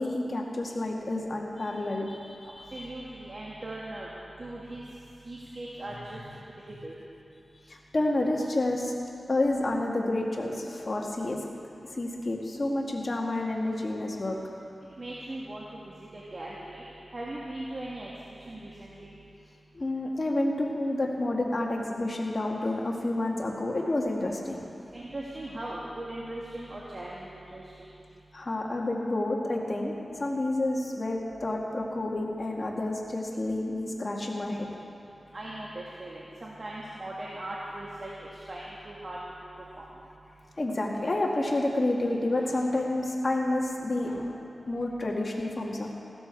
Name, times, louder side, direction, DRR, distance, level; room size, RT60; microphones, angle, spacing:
voice 1, 0.0-2.9 7.7-8.9 9.3-11.4 11.9-14.4 19.7-24.6 28.3-34.7 40.6-44.4 44.7-45.9, left 2 dB, 45° left, -1 dB, 2.0 m, -29 dB
voice 2, 2.7-4.1 4.4-4.8 5.2-6.9 15.0-16.8 17.1-18.1 18.4-19.1 24.9-27.9 35.3-39.2 39.8-39.9, right 1 dB, 50° right, -6 dB, 2.0 m, -39 dB
16.0 x 13.0 x 4.6 m, 2.7 s
wide cardioid pair, 60°, 0 cm